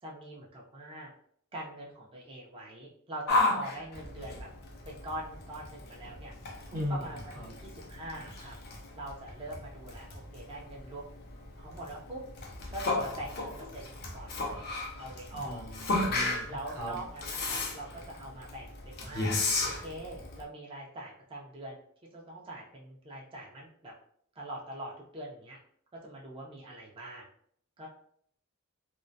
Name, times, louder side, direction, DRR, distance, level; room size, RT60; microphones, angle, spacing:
voice 1, 0.0-1.1 1.5-4.5 4.8-6.3 6.7-7.2 7.5-8.5 9.0-11.0 11.6-12.2 12.7-14.7 15.0-15.7 16.5-19.3 19.6-21.8 22.1-23.9 24.4-25.6 26.0-27.3 27.8-27.9, right 1 dB, 25° right, -3 dB, 0.4 m, -43 dB
Yell, 3.3-20.4, left 2 dB, 50° left, 0.5 m, -35 dB
voice 2, 15.3-16.9, left 1 dB, 80° right, -2 dB, 0.7 m, -37 dB
2.4 x 2.1 x 2.5 m, 0.64 s
head